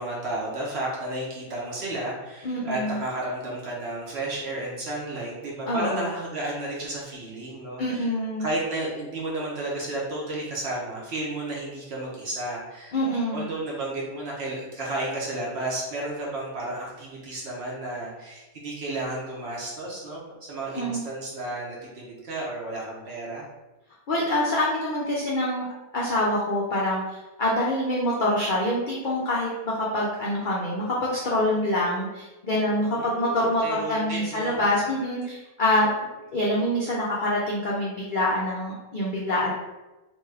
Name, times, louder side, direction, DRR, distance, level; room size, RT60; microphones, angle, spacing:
voice 1, 0.0-8.1 8.4-12.9 13.3-23.5 32.9-34.6, right 2 dB, 55° right, -4 dB, 0.8 m, -32 dB
voice 2, 2.4-3.0 5.7-6.1 7.8-8.5 12.9-13.4 20.7-21.0 24.1-25.7 25.9-27.0 27.4-35.9 36.3-39.5, left 1 dB, 70° left, -5 dB, 0.4 m, -25 dB
3.0 x 2.2 x 3.2 m, 1.1 s
omnidirectional pair, 1.5 m